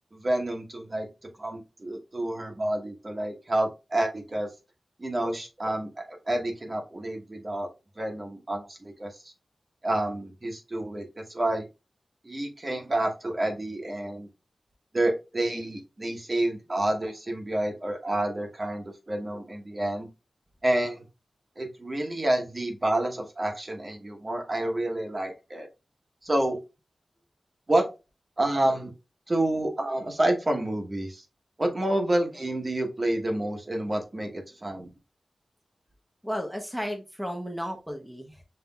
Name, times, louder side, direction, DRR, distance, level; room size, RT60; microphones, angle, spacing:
voice 1, 0.1-1.1 1.4-4.5 5.0-7.7 8.0-9.3 9.8-11.7 12.2-14.3 14.9-20.1 20.6-21.0 21.6-25.7 26.2-26.6 27.7-27.9 28.4-28.9 29.3-31.2 31.6-34.9, right 1 dB, 35° right, 3 dB, 1.1 m, -29 dB
voice 2, 36.2-38.4, equal, ahead, 2 dB, 0.8 m, -34 dB
5.6 x 3.3 x 2.3 m, 0.27 s
wide cardioid pair, 100°, 0 cm